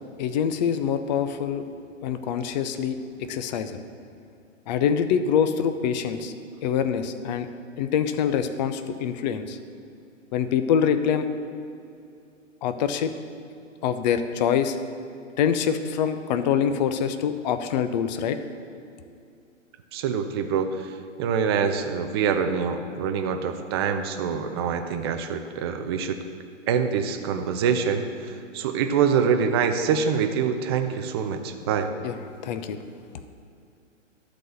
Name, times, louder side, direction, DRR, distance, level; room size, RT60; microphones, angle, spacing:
voice 1, 0.2-1.6 2.0-3.0 3.3-3.8 4.7-6.3 6.6-7.5 7.8-9.6 10.3-11.3 12.6-13.1 13.8-14.8 15.4-18.4 32.0-32.1 32.4-32.8, left 8 dB, 35° left, 10 dB, 0.5 m, -25 dB
voice 2, 19.9-20.7 21.2-26.2 26.7-31.9, right 6 dB, 20° right, 6 dB, 0.4 m, -25 dB
12.0 x 4.2 x 7.8 m, 2.5 s
hypercardioid pair, 125°, 38 cm